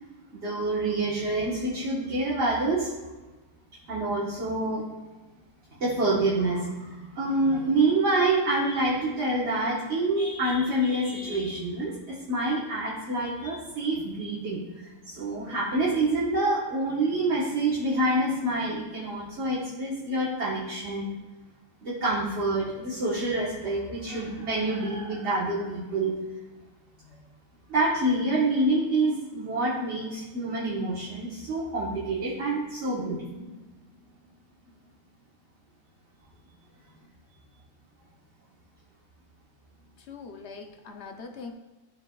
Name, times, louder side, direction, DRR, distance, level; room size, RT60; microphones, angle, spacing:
voice 1, 0.3-2.9 3.9-4.9 5.8-21.1 21.8-26.1 27.0-27.2 27.7-33.4, right 2 dB, 55° right, -6 dB, 1.5 m, -27 dB
voice 2, 40.0-41.5, left 4 dB, 65° left, 4 dB, 0.8 m, -42 dB
13.0 x 4.7 x 2.3 m, 1.1 s
omnidirectional pair, 1.4 m